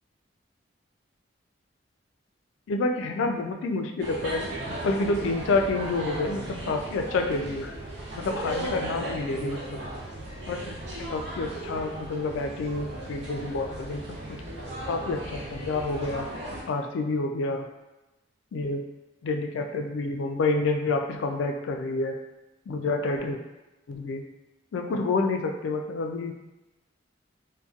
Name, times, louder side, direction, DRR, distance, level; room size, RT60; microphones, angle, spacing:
voice 1, 2.7-7.8 8.1-9.8 10.5-10.7 11.0-14.2 14.9-16.3 16.7-17.7 18.5-18.8 19.2-22.1 22.7-23.4 23.9-24.2 24.7-26.3, left 3 dB, 80° left, 4 dB, 0.3 m, -28 dB
sound 1, 4.0-16.6, right 1 dB, 60° right, 0.5 m, -36 dB
2.6 x 2.2 x 2.4 m, 1.0 s
head